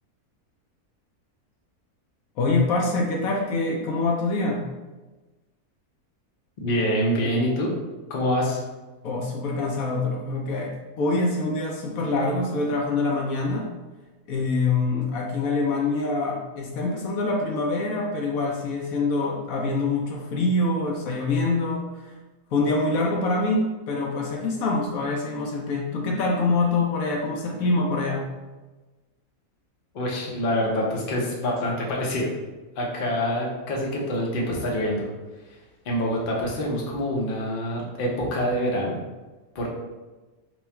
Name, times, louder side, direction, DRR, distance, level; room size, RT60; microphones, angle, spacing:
voice 1, 2.4-4.6 9.0-13.7 14.3-22.1 22.5-28.3, left 3 dB, 75° left, -1 dB, 1.0 m, -25 dB
voice 2, 6.6-7.7 8.1-8.6 29.9-32.3 32.8-35.1 35.8-38.9 39.5-39.7, equal, 45° left, -2 dB, 0.8 m, -26 dB
3.0 x 2.3 x 4.3 m, 1.2 s
omnidirectional pair, 1.6 m